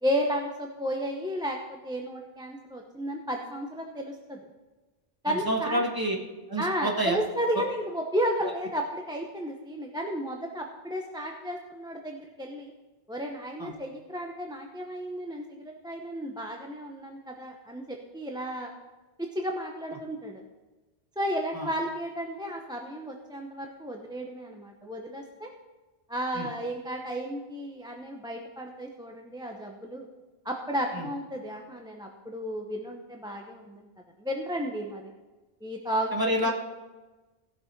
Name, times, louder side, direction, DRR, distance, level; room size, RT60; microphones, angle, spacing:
voice 1, 0.0-4.4 5.2-5.8 6.6-12.7 13.1-18.7 19.2-20.4 21.2-25.5 26.1-30.1 30.4-33.9 34.2-35.1 35.6-36.1 36.4-36.5, equal, 5° right, 1 dB, 0.7 m, -33 dB
voice 2, 5.3-6.2 6.5-7.2 13.6-13.7 21.5-21.7 26.3-26.5 30.9-31.1 36.1-36.5, right 1 dB, 20° right, 0 dB, 1.5 m, -28 dB
16.0 x 6.1 x 4.6 m, 1.2 s
omnidirectional pair, 1.0 m